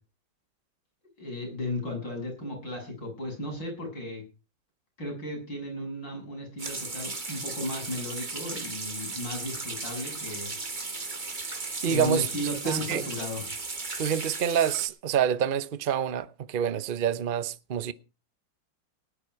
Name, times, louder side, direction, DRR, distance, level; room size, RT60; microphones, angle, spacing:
voice 1, 1.2-4.2 5.0-10.5 11.9-13.4, left 1 dB, 60° left, 7.9 m, -35 dB
sound 1, 6.6-14.9, right 3 dB, 25° right, 1.6 m, -36 dB
voice 2, 11.8-12.3 12.7-13.0 14.0-17.9, right 9 dB, 65° right, 0.5 m, -27 dB
19.0 x 10.5 x 4.7 m
omnidirectional pair, 2.2 m